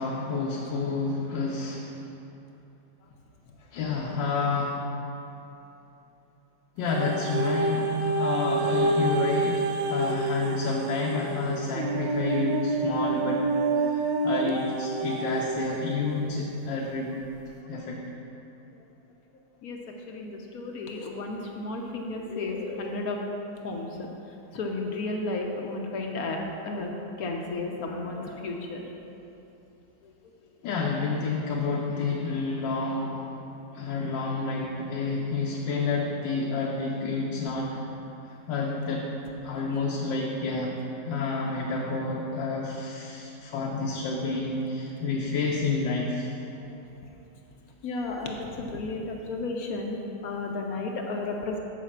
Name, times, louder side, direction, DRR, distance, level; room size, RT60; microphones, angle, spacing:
voice 1, 0.0-2.0 3.7-4.8 6.8-9.6 9.9-13.4 13.8-17.1 17.7-18.0 30.6-33.3 33.7-37.8 38.5-39.1 39.4-46.3, left 3 dB, 80° left, -2 dB, 1.4 m, -29 dB
sound 1, 6.9-16.0 16.6-16.7, right 3 dB, 80° right, 1.3 m, -28 dB
voice 2, 20.1-23.2 23.6-24.1 24.5-26.4 26.6-26.9 27.2-29.0 30.0-30.1 46.7-46.8 47.8-50.0 50.2-51.6, left 3 dB, 65° left, 1 dB, 1.0 m, -33 dB
7.4 x 5.2 x 7.1 m, 2.9 s
omnidirectional pair, 2.0 m